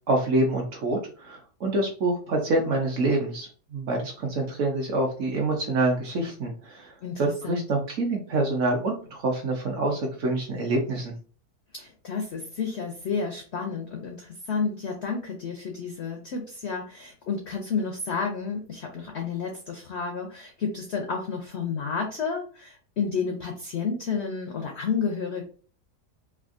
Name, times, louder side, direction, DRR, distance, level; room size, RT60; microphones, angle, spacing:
voice 1, 0.1-11.1, right 2 dB, 60° right, 1 dB, 0.8 m, -26 dB
voice 2, 7.0-7.6 11.7-25.4, left 5 dB, 70° left, 2 dB, 0.6 m, -31 dB
3.4 x 2.3 x 2.4 m, 0.41 s
omnidirectional pair, 1.7 m